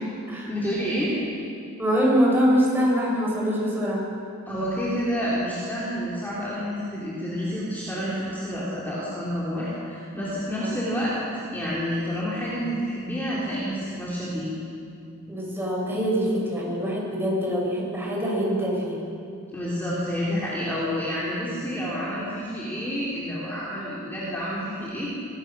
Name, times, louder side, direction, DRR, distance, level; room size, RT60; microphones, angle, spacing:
voice 1, 0.5-1.1 4.5-11.2 11.5-14.6 19.5-25.2, equal, 10° left, -8 dB, 3.6 m, -29 dB
voice 2, 1.8-4.1 10.6-10.7 15.3-19.0, equal, 10° right, -4 dB, 6.3 m, -24 dB
25.5 x 17.0 x 6.3 m, 2.6 s
head